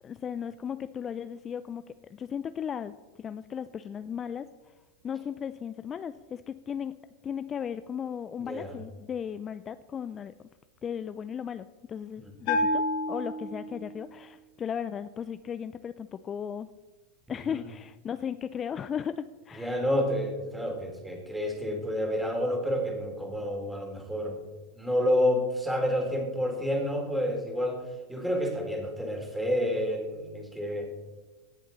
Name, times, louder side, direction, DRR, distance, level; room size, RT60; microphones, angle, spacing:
voice 1, 0.0-1.8 2.1-2.9 3.2-4.7 5.0-6.9 7.2-10.3 10.8-16.7 17.3-19.9, left 8 dB, 30° left, 12 dB, 0.4 m, -36 dB
voice 2, 8.4-8.7 12.2-12.3 17.3-17.6 19.6-24.4 24.7-27.8 28.1-30.9, equal, 5° right, 2 dB, 3.0 m, -29 dB
Bell, 12.5-14.1, left 1 dB, 55° left, 2.1 m, -29 dB
17.5 x 7.3 x 4.0 m, 1.2 s
hypercardioid pair, 90°, 0 cm